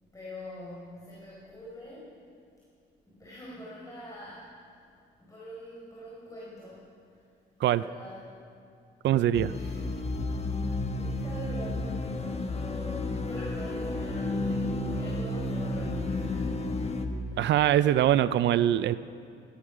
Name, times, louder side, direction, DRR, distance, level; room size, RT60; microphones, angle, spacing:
voice 1, 0.0-2.1 3.0-4.5 4.8-4.9 5.2-7.2 7.6-8.3 9.5-10.7 11.0-16.8 17.2-17.5, left 1 dB, 15° left, -7 dB, 4.6 m, -45 dB
voice 2, 9.0-9.5 17.4-18.9, right 11 dB, 65° right, 15 dB, 0.5 m, -23 dB
sound 1, 9.3-17.1, left 2 dB, 30° left, 1.4 m, -32 dB
17.0 x 13.0 x 6.1 m, 2.3 s
cardioid pair, 90°, 20 cm